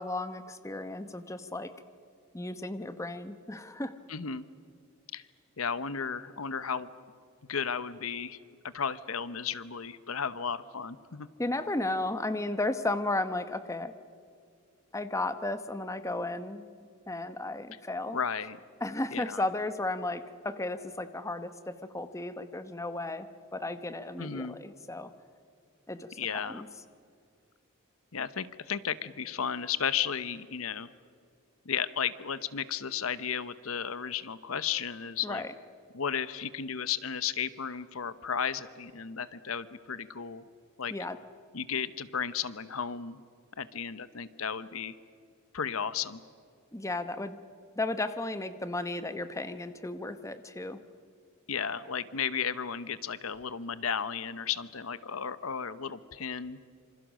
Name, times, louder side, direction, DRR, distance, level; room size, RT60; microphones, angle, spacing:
voice 1, 0.0-1.7 2.3-3.9 11.4-13.9 14.9-16.7 17.1-18.2 18.8-25.1 25.9-26.7 35.2-35.5 40.9-41.2 46.7-47.4 47.8-50.8, left 2 dB, 15° left, 11 dB, 0.9 m, -34 dB
voice 2, 4.1-4.4 5.1-5.2 5.6-6.9 7.5-8.4 8.7-11.3 18.1-18.6 19.1-19.4 24.2-24.6 26.2-26.6 28.1-30.9 31.6-35.4 35.9-40.5 40.8-40.9 41.5-43.2 43.6-45.0 45.5-46.2 51.5-56.6, left 7 dB, 85° left, 15 dB, 0.9 m, -34 dB
26.5 x 26.0 x 6.3 m, 2.2 s
head